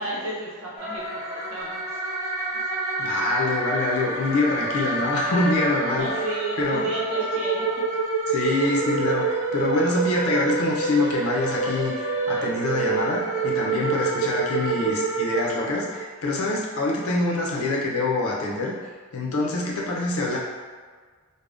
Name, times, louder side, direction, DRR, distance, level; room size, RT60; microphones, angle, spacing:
voice 1, 0.0-2.0 2.5-2.7 5.8-7.8, right 1 dB, 75° right, -6 dB, 0.8 m, -33 dB
sound 1, 0.8-16.1, right 3 dB, 35° right, 0.9 m, -27 dB
voice 2, 3.0-6.1 6.6-6.9 8.3-18.8 19.1-20.4, left 2 dB, 75° left, -3 dB, 0.6 m, -25 dB
2.5 x 2.1 x 3.4 m, 1.5 s
head